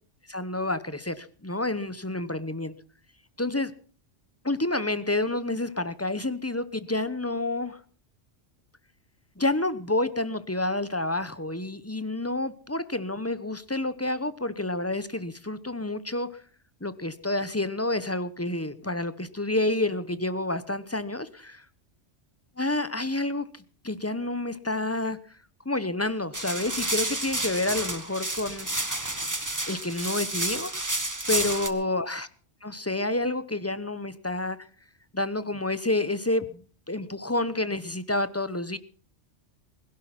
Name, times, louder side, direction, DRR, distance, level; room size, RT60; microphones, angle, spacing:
voice 1, 0.3-2.7 3.4-3.7 4.4-7.8 9.4-16.3 16.8-21.6 22.6-23.5 23.8-25.2 25.6-28.7 29.7-30.7 31.3-32.3 32.6-34.6 35.1-36.6 36.9-38.8, left 2 dB, 15° left, 14 dB, 0.8 m, -29 dB
sound 1, 26.3-31.7, right 1 dB, 15° right, 1.6 m, -30 dB
21.0 x 11.5 x 5.9 m, 0.43 s
omnidirectional pair, 1.2 m